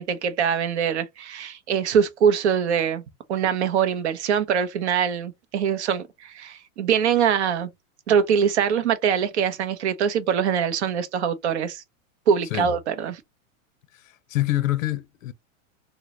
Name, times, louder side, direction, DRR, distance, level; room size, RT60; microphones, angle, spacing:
voice 1, 0.0-3.0 3.3-7.7 8.1-11.8 12.3-13.2, right 7 dB, 55° right, 0.7 m, -23 dB
voice 2, 13.9-15.3, left 15 dB, 65° left, 0.6 m, -26 dB
3.7 x 2.1 x 2.8 m
supercardioid pair, 175°, 42 cm